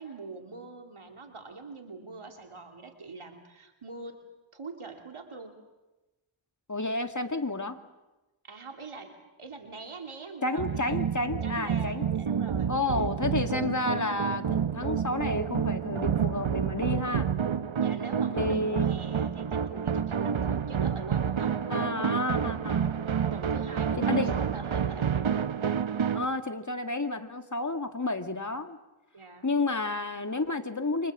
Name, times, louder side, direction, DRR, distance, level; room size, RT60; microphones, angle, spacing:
voice 1, 0.0-4.2 4.5-5.6 8.4-11.0 11.4-12.7 17.8-21.6 23.3-25.4 29.1-29.5, right 4 dB, 90° right, 4 dB, 2.9 m, -43 dB
voice 2, 6.7-7.8 10.4-12.0 12.7-17.3 18.3-18.9 21.7-22.9 24.0-24.4 26.1-28.8 29.4-31.1, left 2 dB, 35° left, 7 dB, 2.2 m, -31 dB
sound 1, 10.6-26.3, right 7 dB, 70° right, 1.0 m, -29 dB
28.5 x 25.0 x 7.4 m, 1.1 s
wide cardioid pair, 45°, 49 cm